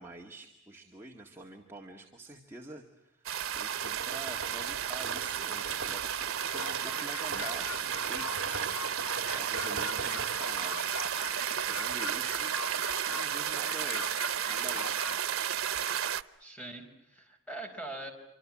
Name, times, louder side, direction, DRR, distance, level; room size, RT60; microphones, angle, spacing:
voice 1, 0.0-3.3 3.5-8.4 8.9-11.1 11.6-14.0 14.5-15.2, right 2 dB, 10° right, 0 dB, 1.9 m, -47 dB
sound 1, 3.3-16.2, right 9 dB, 90° right, 1.0 m, -33 dB
sound 2, 3.7-12.4, right 5 dB, 65° right, 2.1 m, -41 dB
sound 3, 6.4-15.2, left 5 dB, 80° left, 1.5 m, -42 dB
voice 2, 16.4-18.1, right 2 dB, 5° left, 3 dB, 5.2 m, -42 dB
26.5 x 26.0 x 7.5 m, 0.89 s
head